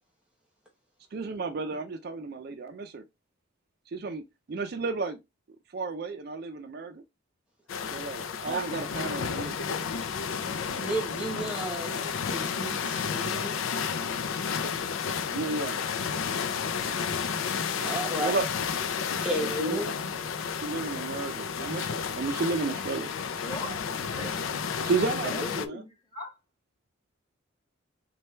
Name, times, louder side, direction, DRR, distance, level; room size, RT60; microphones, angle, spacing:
voice 1, 1.1-3.0 3.9-4.2 4.5-5.2 5.7-7.0 7.9-9.6 10.7-10.9 15.3-15.8 18.2-18.5 19.4-19.8 20.5-23.1 24.8-25.8, right 4 dB, 50° right, 0.4 m, -32 dB
sound 1, 7.7-25.7, left 6 dB, 80° left, 0.4 m, -32 dB
voice 2, 10.8-13.6 17.8-18.3 19.2-19.9, right 1 dB, 5° right, 1.0 m, -33 dB
voice 3, 23.4-24.4 25.2-26.3, left 2 dB, 20° left, 1.6 m, -39 dB
4.3 x 2.2 x 3.1 m
head